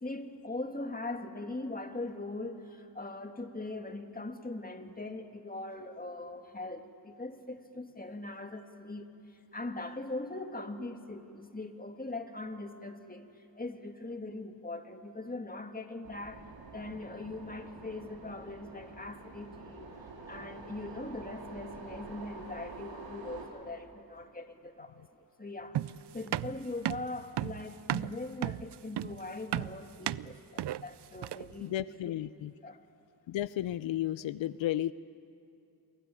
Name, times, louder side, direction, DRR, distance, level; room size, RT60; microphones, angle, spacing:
voice 1, 0.0-13.3 13.6-19.9 20.3-25.0 25.4-31.8 32.6-32.8, left 2 dB, 20° left, 6 dB, 2.2 m, -41 dB
sound 1, 16.0-23.5, right 4 dB, 80° right, 4.6 m, -47 dB
sound 2, 25.7-31.6, right 12 dB, 65° right, 0.6 m, -35 dB
voice 2, 31.6-32.5 33.3-34.9, left 13 dB, 85° left, 17 dB, 0.6 m, -33 dB
28.0 x 23.0 x 8.5 m, 2.7 s
cardioid pair, 70°, 45 cm